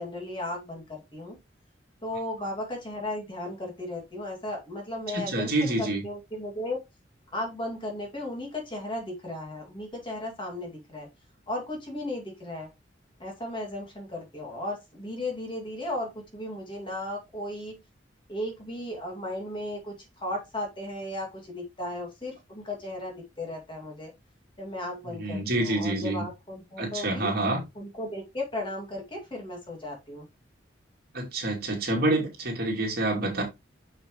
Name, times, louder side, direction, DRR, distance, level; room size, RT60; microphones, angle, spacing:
voice 1, 0.0-1.4 2.0-6.8 7.3-11.1 11.5-12.7 13.2-17.8 18.3-24.1 24.6-27.3 27.8-30.3, left 1 dB, 25° left, 2.3 m, -35 dB
voice 2, 5.1-6.0 25.1-26.2 26.8-27.6 31.1-33.4, right 2 dB, 55° right, 2.7 m, -27 dB
6.6 x 6.4 x 3.1 m
head